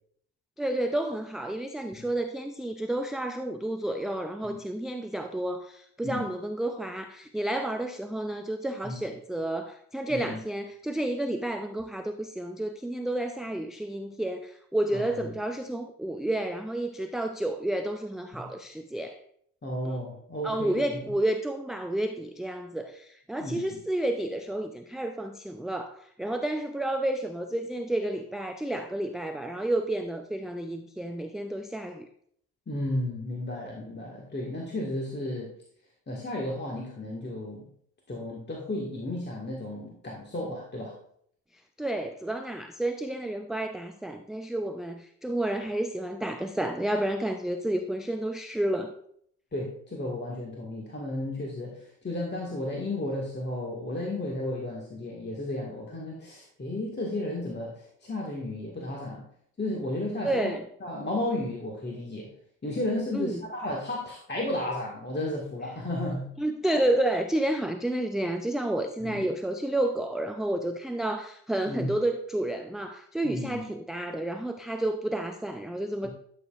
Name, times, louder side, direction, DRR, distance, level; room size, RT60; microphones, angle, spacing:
voice 1, 0.6-19.2 19.8-19.9 20.4-32.1 41.8-48.9 60.2-60.6 63.1-63.4 66.4-76.1, right 1 dB, ahead, 7 dB, 0.4 m, -30 dB
voice 2, 10.1-10.4 14.9-15.3 18.3-18.5 19.6-21.1 23.4-23.8 32.7-35.5 36.1-37.7 38.1-40.9 49.5-59.2 59.6-60.5 60.8-62.3 62.6-66.3 69.0-69.2 71.7-71.9 73.2-73.6 76.0-76.1, left 1 dB, 20° left, -2 dB, 1.8 m, -33 dB
12.0 x 6.7 x 2.5 m, 0.66 s
figure-of-eight pair, 45°, 49 cm